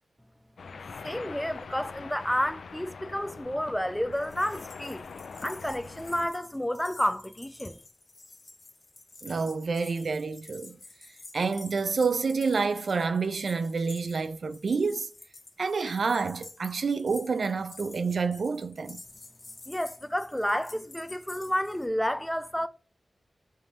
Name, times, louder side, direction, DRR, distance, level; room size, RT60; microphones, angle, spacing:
sound 1, 0.6-6.3, left 5 dB, 85° left, 0.3 m, -43 dB
voice 1, 1.0-5.0 5.4-7.8 19.7-22.7, equal, 5° left, 0.3 m, -30 dB
sound 2, 4.1-21.9, left 3 dB, 45° left, 0.8 m, -50 dB
voice 2, 9.2-10.8 11.3-15.1 15.6-19.0, right 4 dB, 70° right, 0.3 m, -28 dB
3.4 x 2.7 x 4.4 m
wide cardioid pair, 85°, 0 cm